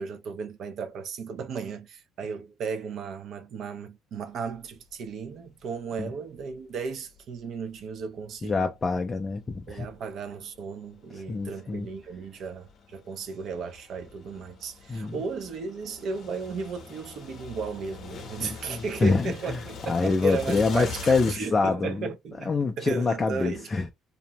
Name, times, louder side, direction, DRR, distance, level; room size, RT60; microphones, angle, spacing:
voice 1, 0.0-8.7 9.7-23.7, right 5 dB, 55° right, 0.5 m, -35 dB
sound 1, 4.5-4.8 5.2-5.3 6.3-8.0 8.6-21.3, left 5 dB, 45° left, 0.7 m, -43 dB
voice 2, 8.4-9.9 11.1-11.9 14.9-15.2 18.4-19.6 19.9-22.1 22.5-23.9, left 4 dB, 20° left, 0.3 m, -26 dB
2.6 x 2.1 x 2.8 m
cardioid pair, 145°, 0 cm